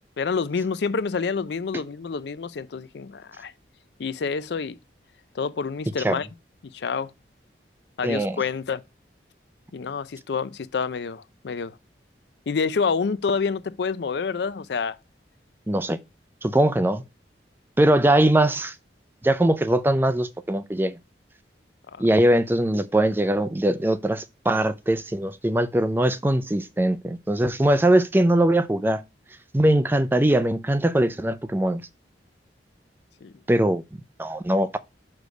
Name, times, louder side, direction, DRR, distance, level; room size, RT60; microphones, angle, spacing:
voice 1, 0.2-3.5 4.0-4.8 5.3-6.3 6.6-7.1 8.0-8.8 9.7-11.8 12.5-15.0 21.9-22.0 33.2-33.3, left 5 dB, 65° left, 0.4 m, -28 dB
voice 2, 8.0-8.4 15.7-16.0 16.4-17.0 17.8-18.7 19.2-21.0 22.0-29.0 29.5-31.8 33.5-33.8 34.2-34.8, right 1 dB, 10° right, 0.4 m, -21 dB
6.6 x 3.3 x 5.1 m
head